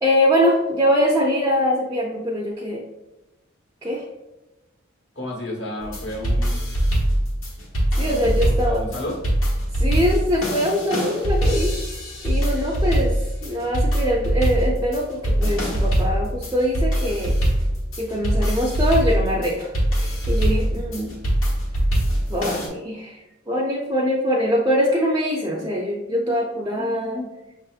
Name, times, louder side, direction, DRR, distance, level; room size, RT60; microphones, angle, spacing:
voice 1, 0.0-2.8 3.8-4.1 8.0-8.8 9.7-11.8 12.2-17.3 18.0-21.2 22.3-27.3, equal, 15° right, -3 dB, 0.5 m, -23 dB
voice 2, 5.1-7.0 8.0-9.2, left 1 dB, 60° left, -1 dB, 1.1 m, -32 dB
sound 1, 5.8-22.7, equal, 85° left, 1.2 m, -22 dB
5.8 x 2.7 x 2.4 m, 1.0 s
head